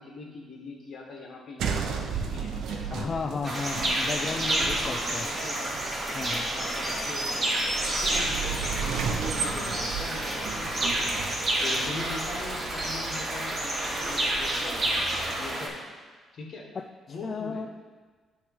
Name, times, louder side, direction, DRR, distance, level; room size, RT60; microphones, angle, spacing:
voice 1, 0.0-3.7 4.2-5.8 6.5-7.3 8.2-11.2 11.5-14.8 15.4-15.8 16.3-16.7 17.1-17.7, left 3 dB, 60° left, 0 dB, 1.3 m, -42 dB
sound 1, 1.6-15.3, right 6 dB, 80° right, 0.6 m, -36 dB
voice 2, 2.9-5.3 6.1-6.5 16.7-17.7, left 4 dB, 40° left, 5 dB, 0.3 m, -34 dB
sound 2, 3.4-15.7, right 1 dB, 35° right, 1.8 m, -29 dB
9.2 x 3.2 x 5.3 m, 1.4 s
cardioid pair, 90°, 0 cm